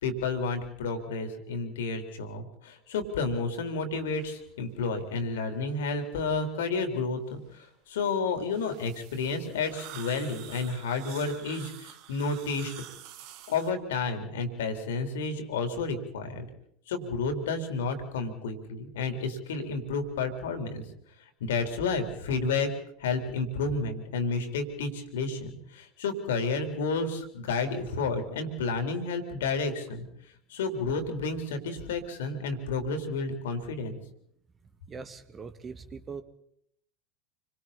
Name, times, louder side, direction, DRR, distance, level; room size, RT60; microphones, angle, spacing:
voice 1, 0.0-12.7 13.5-16.4 16.9-20.8 21.4-22.7 23.0-30.1 30.5-34.0, left 4 dB, 65° left, 6 dB, 4.0 m, -31 dB
sound 1, 4.1-4.4 5.1-5.2 5.7-6.4 8.1-13.7, right 11 dB, 50° right, 2.0 m, -48 dB
voice 2, 34.9-36.2, right 5 dB, 25° right, 10 dB, 1.9 m, -41 dB
29.5 x 24.5 x 4.3 m, 0.71 s
figure-of-eight pair, 75°, 0 cm